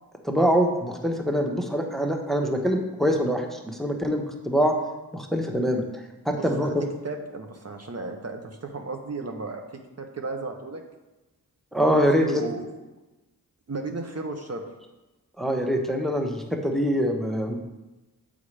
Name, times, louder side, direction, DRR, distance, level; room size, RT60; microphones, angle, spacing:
voice 1, 0.2-4.7 5.1-5.8 6.3-6.8 11.7-12.5 15.4-17.5, equal, ahead, 3 dB, 0.8 m, -24 dB
voice 2, 6.3-6.8 7.0-10.8 12.0-12.7 13.7-14.6, right 3 dB, 45° right, 3 dB, 0.7 m, -35 dB
6.9 x 5.0 x 3.3 m, 1.1 s
cardioid pair, 45°, 36 cm